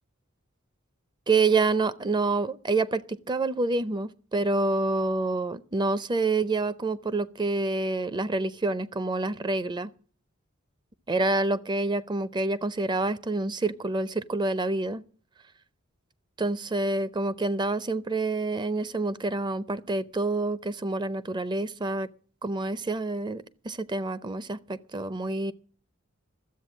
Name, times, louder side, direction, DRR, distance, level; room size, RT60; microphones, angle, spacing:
voice 1, 1.3-9.9 11.1-15.0 16.4-22.1 22.4-25.5, right 3 dB, 20° right, 0.5 m, -27 dB
13.0 x 7.9 x 7.2 m
head